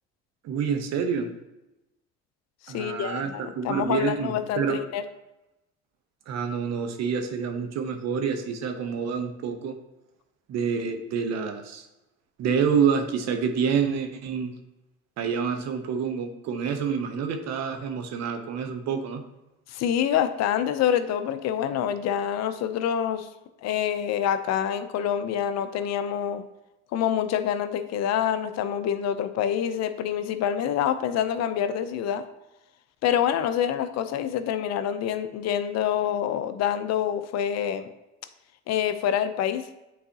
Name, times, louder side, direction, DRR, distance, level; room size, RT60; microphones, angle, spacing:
voice 1, 0.4-1.3 2.7-4.8 6.3-9.8 10.5-11.9 12.4-14.5 15.2-19.2, right 6 dB, 60° right, 6 dB, 0.9 m, -27 dB
voice 2, 2.6-5.0 19.7-23.3 23.6-26.4 26.9-32.3 33.0-37.9 38.7-39.7, left 9 dB, 60° left, 11 dB, 0.6 m, -26 dB
8.5 x 4.0 x 2.8 m, 0.96 s
supercardioid pair, 75°, 29 cm